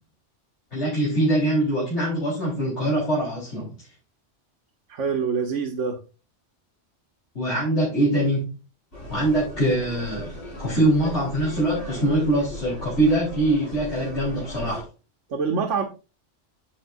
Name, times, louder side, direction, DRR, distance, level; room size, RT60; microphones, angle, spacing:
voice 1, 0.7-3.7 7.3-8.5 9.1-10.3 10.6-14.9, right 1 dB, 65° left, -7 dB, 4.4 m, -23 dB
voice 2, 4.9-6.0 15.3-15.8, right 5 dB, 80° right, 4 dB, 1.3 m, -25 dB
sound 1, 8.9-14.8, equal, 50° left, 5.8 m, -37 dB
9.8 x 7.5 x 2.6 m, 0.32 s
omnidirectional pair, 1.2 m